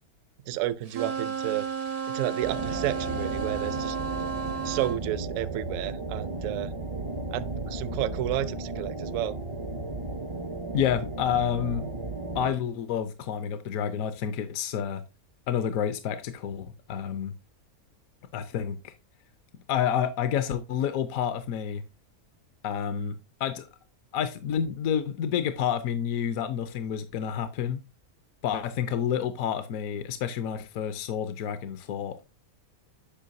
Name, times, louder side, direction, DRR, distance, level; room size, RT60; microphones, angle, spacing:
voice 1, 0.5-1.7 2.1-4.0 4.6-6.7 7.3-9.4, right 13 dB, 70° right, 0.9 m, -31 dB
sound 1, 0.9-5.0, right 7 dB, 90° right, 1.8 m, -33 dB
sound 2, 2.4-12.5, right 2 dB, 45° right, 0.4 m, -35 dB
voice 2, 10.7-11.9 12.3-15.0 15.5-17.4 18.3-18.9 19.7-21.8 22.6-23.7 24.1-27.8 28.4-32.2, left 8 dB, 75° left, 1.1 m, -29 dB
8.5 x 5.6 x 2.6 m
omnidirectional pair, 1.5 m